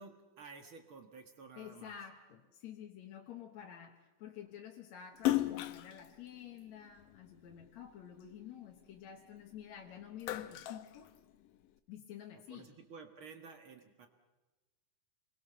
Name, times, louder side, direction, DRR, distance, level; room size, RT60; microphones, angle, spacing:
voice 1, 0.0-2.0 12.3-14.1, right 4 dB, 50° right, 5 dB, 1.9 m, -53 dB
voice 2, 1.6-11.1 11.9-12.7, left 9 dB, 65° left, 1 dB, 2.4 m, -50 dB
Splash splatter, 5.2-7.7 8.2-9.6 10.0-11.7, left 14 dB, 85° left, 2.5 m, -36 dB
27.0 x 21.5 x 6.8 m, 1.2 s
omnidirectional pair, 3.6 m